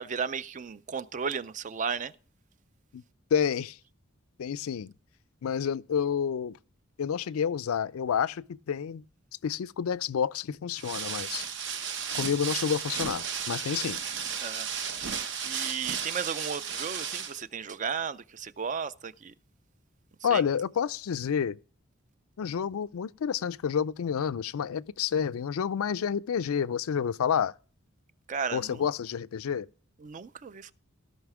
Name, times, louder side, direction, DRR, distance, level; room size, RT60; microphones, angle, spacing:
voice 1, 0.0-2.1 14.4-14.7 15.4-19.3 20.3-20.4 28.3-28.8 30.0-30.7, right 6 dB, 35° right, 0.4 m, -34 dB
voice 2, 3.3-3.8 4.4-4.9 5.4-6.6 7.0-9.0 9.4-11.5 12.1-14.0 20.2-21.6 22.4-27.5 28.5-29.7, left 7 dB, 85° left, 0.4 m, -29 dB
sound 1, 10.7-17.4, right 7 dB, 60° right, 0.8 m, -34 dB
16.0 x 5.6 x 4.8 m
head